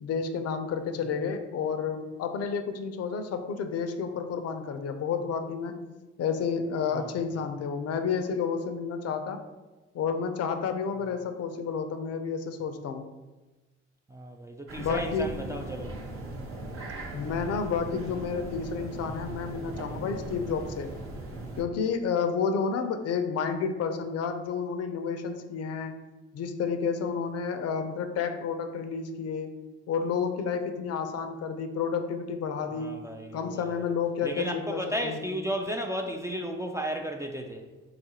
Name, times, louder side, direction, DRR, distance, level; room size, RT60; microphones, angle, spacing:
voice 1, 0.0-5.8 6.2-9.4 9.9-13.0 14.8-15.3 17.1-20.9 21.6-26.0 26.3-29.5 29.9-32.9 33.3-35.2, left 6 dB, 50° left, 7 dB, 0.5 m, -30 dB
voice 2, 14.1-15.9 32.7-33.9 34.2-37.6, equal, 10° right, 2 dB, 0.3 m, -34 dB
sound 1, 14.7-21.6, right 2 dB, 40° right, 0.9 m, -39 dB
3.9 x 2.4 x 2.8 m, 1.2 s
hypercardioid pair, 50°, 32 cm